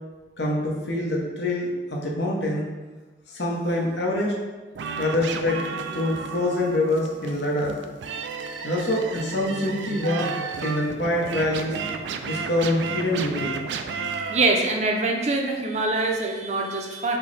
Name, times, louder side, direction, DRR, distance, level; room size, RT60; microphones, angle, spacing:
voice 1, 0.4-2.6 3.3-4.3 5.0-7.7 8.6-10.3 10.6-11.8 12.2-13.6, left 1 dB, 80° left, -2 dB, 0.9 m, -25 dB
sound 1, 4.7-14.4, right 5 dB, 90° right, 0.3 m, -33 dB
voice 2, 14.3-17.2, right 2 dB, 40° right, 1 dB, 0.5 m, -24 dB
5.7 x 2.2 x 4.0 m, 1.3 s
head